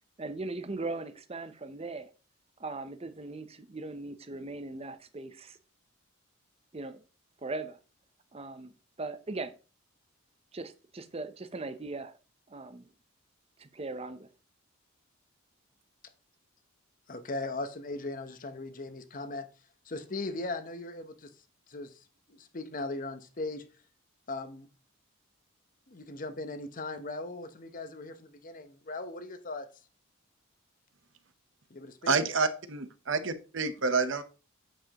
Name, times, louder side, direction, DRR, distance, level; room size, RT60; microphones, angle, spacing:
voice 1, 0.2-2.1 2.6-5.6 6.7-7.0 7.4-7.8 8.3-8.7 9.0-9.5 10.5-12.2 12.5-12.7 13.6-14.3, right 3 dB, 30° right, 0.6 m, -39 dB
voice 2, 17.1-19.5 19.9-21.3 21.7-23.6 24.3-24.7 25.9-29.7 31.7-32.1, left 2 dB, 40° left, 0.8 m, -38 dB
voice 3, 32.1-34.2, right 4 dB, 60° right, 0.9 m, -28 dB
8.8 x 7.4 x 2.9 m
head